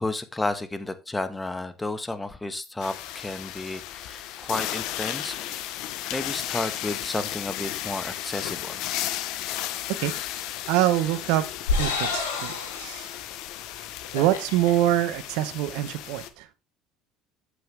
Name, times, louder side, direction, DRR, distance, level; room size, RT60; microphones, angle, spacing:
voice 1, 0.0-5.4 6.1-8.8, left 2 dB, 15° left, 1.3 m, -32 dB
sound 1, 2.8-16.3, left 13 dB, 70° left, 0.9 m, -34 dB
sound 2, 10.0-10.4 11.0-13.2 13.6-13.7 14.0-14.7, left 4 dB, 90° left, 2.5 m, -30 dB
voice 2, 10.7-11.5 11.8-13.1 14.1-16.5, right 13 dB, 75° right, 0.9 m, -25 dB
8.1 x 7.7 x 3.4 m
hypercardioid pair, 80°, 0 cm